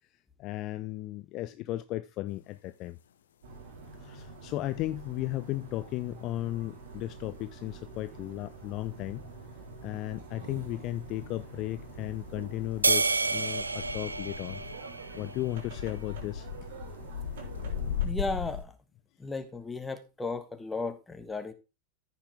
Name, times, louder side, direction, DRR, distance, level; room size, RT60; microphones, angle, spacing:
voice 1, 0.4-3.0 4.0-9.2 9.8-14.6 15.1-16.5, left 16 dB, 40° left, 0.5 m, -35 dB
sound 1, 2.5-2.6 5.4-5.5 11.8-18.6, left 8 dB, 65° left, 0.8 m, -38 dB
sound 2, 3.4-18.1, right 3 dB, 50° right, 3.5 m, -46 dB
sound 3, 12.8-15.4, right 3 dB, 80° right, 0.6 m, -29 dB
voice 2, 18.0-18.7 19.2-21.5, left 3 dB, 10° left, 1.5 m, -35 dB
14.5 x 5.8 x 3.5 m
figure-of-eight pair, 90°, 0 cm